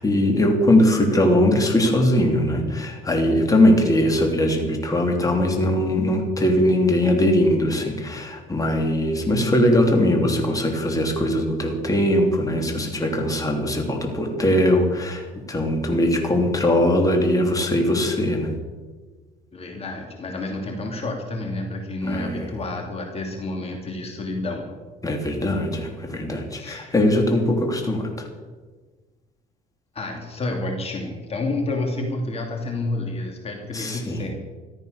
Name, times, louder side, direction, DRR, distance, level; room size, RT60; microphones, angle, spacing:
voice 1, 0.0-18.5 22.0-22.5 25.0-28.3 33.7-34.3, left 1 dB, 20° left, 2 dB, 3.1 m, -20 dB
voice 2, 19.5-24.7 26.5-26.9 29.9-34.3, left 2 dB, 35° left, 2 dB, 2.8 m, -29 dB
15.0 x 12.5 x 6.8 m, 1.3 s
cardioid pair, 110°, 17 cm